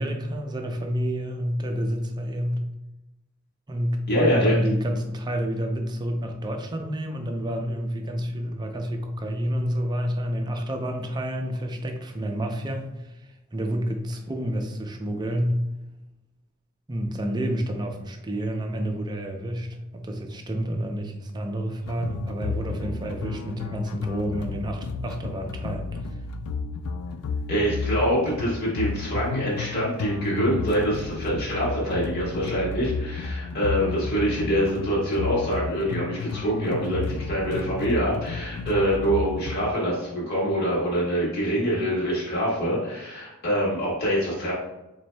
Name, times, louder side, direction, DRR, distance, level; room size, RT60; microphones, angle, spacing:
voice 1, 0.0-2.7 3.7-15.7 16.9-26.0, equal, 20° right, 3 dB, 0.4 m, -29 dB
voice 2, 4.1-4.6 27.5-44.5, equal, 45° left, -6 dB, 1.4 m, -25 dB
sound 1, 21.8-39.7, left 4 dB, 80° left, 0.3 m, -32 dB
4.1 x 2.6 x 3.2 m, 0.98 s
head